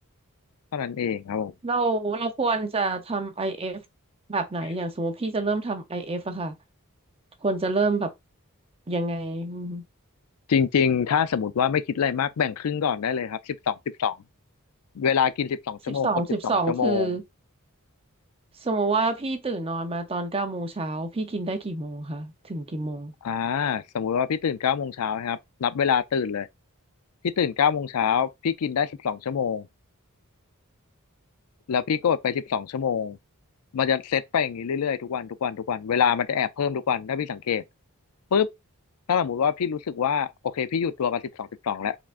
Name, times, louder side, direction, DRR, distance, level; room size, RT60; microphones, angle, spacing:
voice 1, 0.7-1.5 10.5-14.2 15.0-16.1 16.4-17.1 23.2-26.5 27.4-29.7 31.7-33.2 33.7-37.6 38.3-38.5 39.1-42.0, left 7 dB, 80° left, 0.4 m, -25 dB
voice 2, 1.6-3.8 4.3-6.5 7.4-8.1 8.9-9.8 16.0-17.2 18.6-23.1, right 3 dB, 25° right, 0.7 m, -27 dB
4.8 x 3.6 x 2.5 m
head